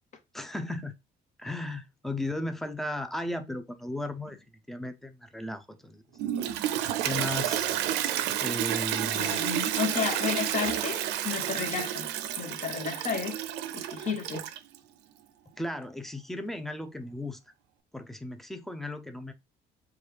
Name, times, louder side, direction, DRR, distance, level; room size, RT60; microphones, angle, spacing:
voice 1, 0.3-0.9 1.4-6.0 7.0-7.7 8.4-9.4 15.6-17.4 17.9-19.3, left 1 dB, ahead, 0.4 m, -35 dB
Toilet flush, 6.2-14.8, right 11 dB, 85° right, 0.4 m, -30 dB
voice 2, 9.1-12.1 12.4-13.4 13.7-14.4, left 6 dB, 45° left, 0.7 m, -32 dB
3.0 x 2.3 x 3.3 m
cardioid pair, 110°, 17 cm